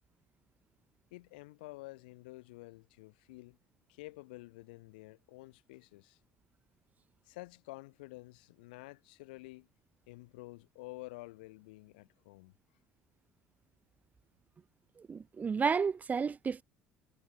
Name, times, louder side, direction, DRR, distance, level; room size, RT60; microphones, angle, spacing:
voice 1, 1.1-3.6 3.9-6.2 7.2-9.7 10.1-12.5, left 22 dB, 85° left, 5.7 m, -50 dB
voice 2, 15.1-16.6, right 6 dB, 35° right, 2.3 m, -31 dB
supercardioid pair, 75°, 5 cm